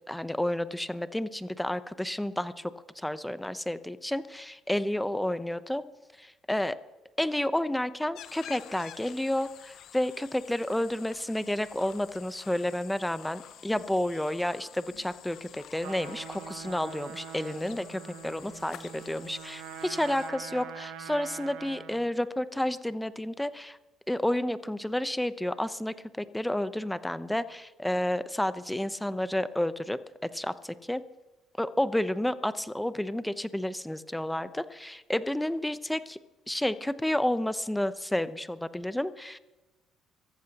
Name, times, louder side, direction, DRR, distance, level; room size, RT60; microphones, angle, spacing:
voice 1, 0.1-2.7 3.0-5.8 6.2-6.8 7.2-23.8 24.1-31.0 31.6-36.2 36.5-39.4, left 1 dB, 5° left, 13 dB, 0.8 m, -31 dB
sound 1, 8.1-20.3, left 10 dB, 65° left, 0.7 m, -50 dB
Trumpet, 15.8-22.1, right 8 dB, 80° right, 1.3 m, -44 dB
24.5 x 14.5 x 3.0 m, 1.1 s
supercardioid pair, 65°, 0 cm